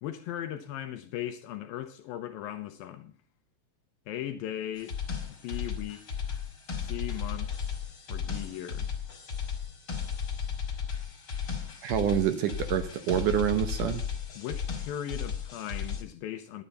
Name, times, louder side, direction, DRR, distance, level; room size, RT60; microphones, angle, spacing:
voice 1, 0.0-3.1 4.1-5.0 5.4-6.2 6.8-7.5 8.1-8.9 14.4-16.6, left 11 dB, 75° left, 2.3 m, -38 dB
sound 1, 4.8-16.0, left 7 dB, 45° left, 2.1 m, -35 dB
voice 2, 11.8-14.1, right 10 dB, 70° right, 2.0 m, -27 dB
10.5 x 10.0 x 5.5 m
omnidirectional pair, 4.6 m